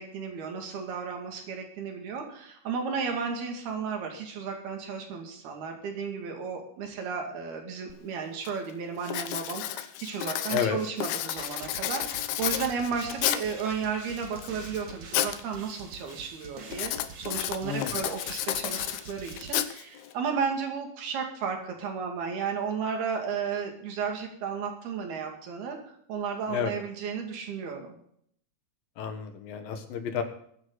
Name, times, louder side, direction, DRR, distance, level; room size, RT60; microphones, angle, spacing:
voice 1, 0.0-27.9, right 6 dB, 90° right, 2 dB, 4.4 m, -33 dB
Writing, 7.9-8.0 8.4-8.7 9.0-13.6 14.2-15.4 15.7-16.1 16.7-20.1, left 13 dB, 85° left, 2.8 m, -32 dB
sound 1, 11.4-20.2, right 4 dB, 45° right, 1.8 m, -46 dB
voice 2, 17.6-18.0 26.5-26.7 29.0-30.2, left 7 dB, 70° left, 6 dB, 3.1 m, -30 dB
21.5 x 9.8 x 4.2 m, 0.66 s
omnidirectional pair, 4.3 m